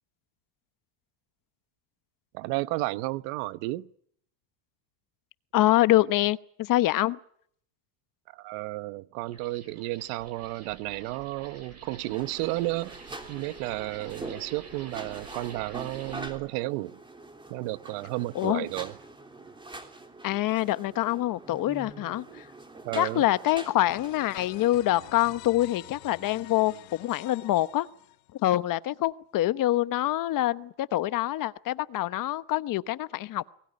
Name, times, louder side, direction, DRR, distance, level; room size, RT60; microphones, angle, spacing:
voice 1, 2.3-3.9 8.3-13.0 13.3-17.0 17.5-19.0 22.3-22.4 22.8-23.2, right 19 dB, 85° right, 1.0 m, -32 dB
voice 2, 5.5-7.2 18.3-18.7 20.2-22.5 23.0-27.9 28.3-33.5, left 15 dB, 45° left, 1.0 m, -25 dB
sound 1, 9.2-16.3, right 5 dB, 35° right, 7.4 m, -49 dB
Basement Random Noise, 12.1-24.7, right 2 dB, 10° right, 3.3 m, -45 dB
sound 2, 23.9-28.5, left 20 dB, 75° left, 1.4 m, -48 dB
23.0 x 19.5 x 9.8 m
cardioid pair, 135°, 45 cm